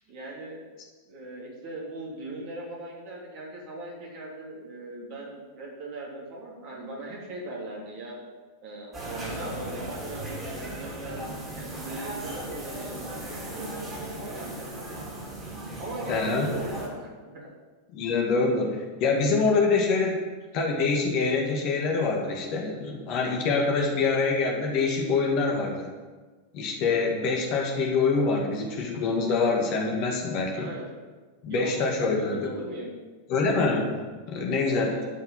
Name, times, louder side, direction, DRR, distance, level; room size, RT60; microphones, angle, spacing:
voice 1, 0.1-0.7 1.0-8.2 8.6-15.0 15.8-17.4 30.5-30.8 31.5-32.9 34.6-35.1, right 2 dB, 45° right, -3 dB, 3.5 m, -39 dB
sound 1, 8.9-16.9, right 1 dB, 25° right, 4.0 m, -37 dB
voice 2, 16.1-16.5 17.9-20.2 20.5-25.9 26.5-30.7 31.4-32.5 33.3-34.0 34.3-35.0, left 4 dB, 40° left, 0 dB, 2.2 m, -25 dB
12.0 x 5.8 x 7.4 m, 1.3 s
figure-of-eight pair, 90°, 0 cm